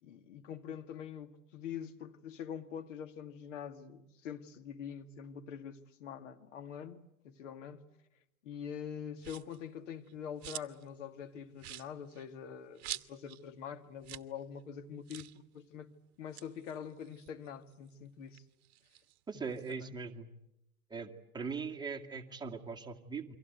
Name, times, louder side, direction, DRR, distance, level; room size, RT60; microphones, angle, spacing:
voice 1, 0.0-7.8 8.4-15.9 16.2-18.4 19.3-20.0, left 8 dB, 55° left, 2.3 m, -45 dB
sound 1, 9.2-9.6 10.0-10.9 11.2-11.3 11.6-13.4 13.7-13.8 14.0-14.3 14.6-14.7 15.1-15.4 16.1-17.9 18.3-19.8, right 15 dB, 45° right, 1.2 m, -47 dB
voice 2, 19.3-20.3 20.9-23.2, right 5 dB, 10° right, 2.2 m, -40 dB
29.0 x 24.0 x 8.1 m
figure-of-eight pair, 105°, 44 cm